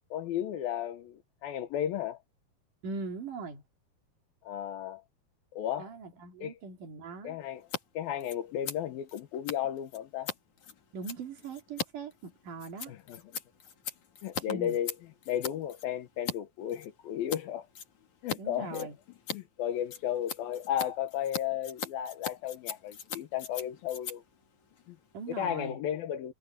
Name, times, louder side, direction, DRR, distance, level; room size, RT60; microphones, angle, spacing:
voice 1, 0.1-2.2 4.4-5.0 5.5-5.9 6.4-6.5 7.2-7.7 7.9-10.3 12.9-13.4 14.2-14.9 15.3-17.7 18.2-18.9 19.3-24.2 24.9-25.0 25.3-26.3, left 10 dB, 75° left, 2.8 m, -34 dB
voice 2, 2.8-3.6 5.8-7.4 10.9-12.9 14.4-14.8 18.4-19.0 25.1-25.8, right 4 dB, 55° right, 3.6 m, -40 dB
Scissors, 7.6-7.8 8.1-16.4 16.7-17.4 17.7-18.4 18.7-25.4, left 7 dB, 50° left, 3.5 m, -40 dB
omnidirectional pair, 4.6 m